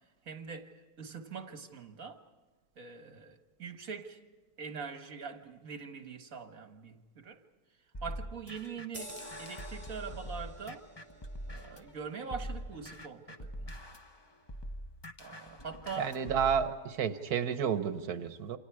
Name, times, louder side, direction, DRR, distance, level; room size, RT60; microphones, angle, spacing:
voice 1, 0.3-2.2 2.8-4.2 4.6-7.4 8.0-10.9 11.5-13.7 15.2-16.1, right 5 dB, 65° right, 2.0 m, -43 dB
sound 1, 7.9-11.9 12.3-16.7, equal, 20° left, 1.0 m, -44 dB
sound 2, 8.9-13.9 14.3-14.5, equal, 20° right, 6.0 m, -51 dB
voice 2, 15.9-18.6, right 7 dB, 90° right, 1.5 m, -31 dB
28.0 x 27.5 x 4.8 m
omnidirectional pair, 1.6 m